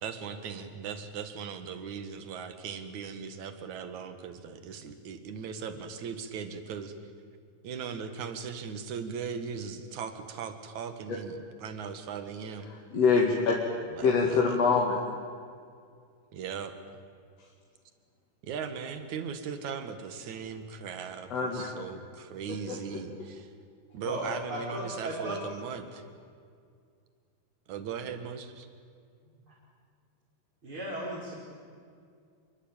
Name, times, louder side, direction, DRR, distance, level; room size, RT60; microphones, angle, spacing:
voice 1, 0.0-6.9 7.6-12.7 14.0-14.1 16.3-16.7 18.4-21.3 21.6-23.4 23.9-25.8 27.7-28.7, right 6 dB, 60° right, 9 dB, 3.0 m, -38 dB
voice 2, 12.6-13.5 14.0-15.2 21.3-21.7 22.5-22.8, left 5 dB, 50° left, -1 dB, 3.1 m, -25 dB
voice 3, 24.0-25.4 29.3-29.5 30.6-31.3, equal, 35° right, -6 dB, 5.8 m, -36 dB
27.0 x 23.0 x 9.1 m, 2.2 s
omnidirectional pair, 4.0 m